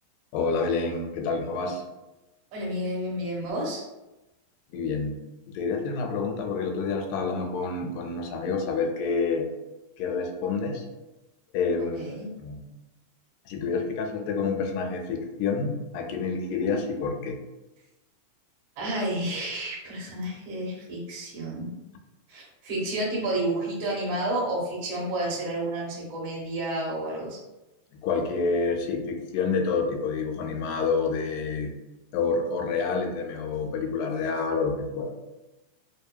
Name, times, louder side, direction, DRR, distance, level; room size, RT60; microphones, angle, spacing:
voice 1, 0.3-1.8 4.7-5.2 5.5-9.5 10.0-10.9 11.5-12.1 12.4-12.6 13.5-17.4 28.0-31.7 32.1-35.2, left 4 dB, 85° left, 3 dB, 2.2 m, -28 dB
voice 2, 2.5-3.8 11.8-12.3 18.8-21.7 22.3-27.4, right 1 dB, 60° right, -4 dB, 1.4 m, -30 dB
4.9 x 2.7 x 2.2 m, 1.0 s
omnidirectional pair, 3.8 m